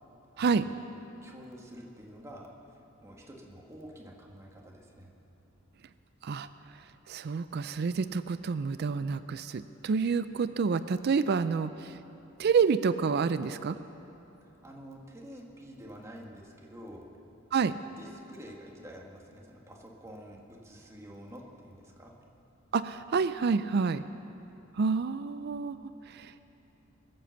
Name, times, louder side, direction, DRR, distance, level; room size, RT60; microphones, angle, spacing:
voice 1, 0.3-0.7 1.2-5.1 14.6-17.1 17.8-22.2, equal, 15° right, -1 dB, 1.6 m, -48 dB
voice 2, 7.1-12.0 12.4-13.8 17.5-17.7 22.7-24.0 24.7-26.4, right 5 dB, 55° right, 13 dB, 0.4 m, -28 dB
22.5 x 7.7 x 7.0 m, 3.0 s
head